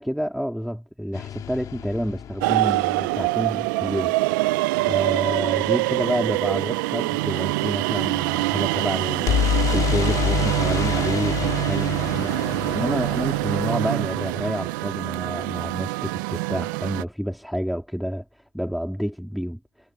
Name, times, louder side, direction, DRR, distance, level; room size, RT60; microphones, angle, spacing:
voice 1, 0.0-4.2 4.8-18.2 18.5-19.6, equal, ahead, 3.2 m, -29 dB
sound 1, 1.1-3.2 9.3-15.0, left 10 dB, 35° left, 2.8 m, -28 dB
sound 2, 2.4-17.0, right 22 dB, 65° right, 0.6 m, -25 dB
supercardioid pair, 140°, 11 cm